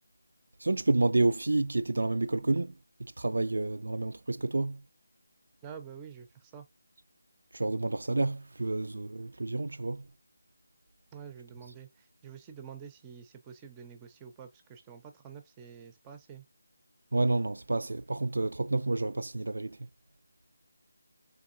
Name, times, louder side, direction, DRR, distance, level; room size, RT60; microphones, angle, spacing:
voice 1, 0.6-2.7 3.0-4.8 7.5-10.0 17.1-19.8, right 2 dB, 75° right, 0.3 m, -29 dB
voice 2, 5.6-6.6 11.1-16.4, right 7 dB, 15° right, 0.5 m, -48 dB
3.7 x 3.4 x 2.6 m
figure-of-eight pair, 170°, 0 cm